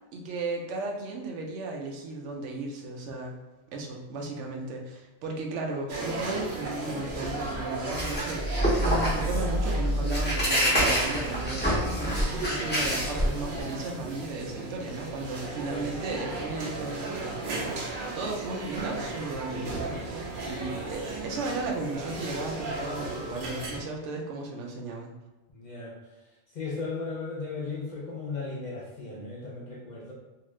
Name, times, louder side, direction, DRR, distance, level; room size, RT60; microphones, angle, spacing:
voice 1, 0.1-3.3 3.7-17.9 18.1-25.1, right 2 dB, 85° right, 1 dB, 0.9 m, -35 dB
sound 1, 5.9-23.8, right 2 dB, 55° right, 0.7 m, -36 dB
sound 2, 7.1-13.6, equal, 10° left, 0.6 m, -27 dB
voice 2, 25.6-26.0 26.5-30.1, left 4 dB, 55° left, -3 dB, 0.5 m, -36 dB
2.7 x 2.4 x 3.1 m, 1.1 s
omnidirectional pair, 1.2 m